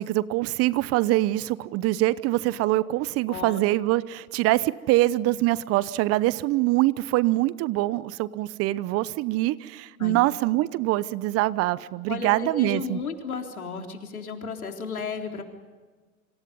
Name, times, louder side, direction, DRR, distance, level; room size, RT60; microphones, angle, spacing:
voice 1, 0.0-13.0, right 17 dB, 35° right, 18 dB, 0.9 m, -24 dB
voice 2, 3.3-3.6 10.0-10.2 12.1-15.4, left 5 dB, 85° left, 3 dB, 3.9 m, -33 dB
28.5 x 26.5 x 5.5 m, 1.4 s
hypercardioid pair, 105°, 42 cm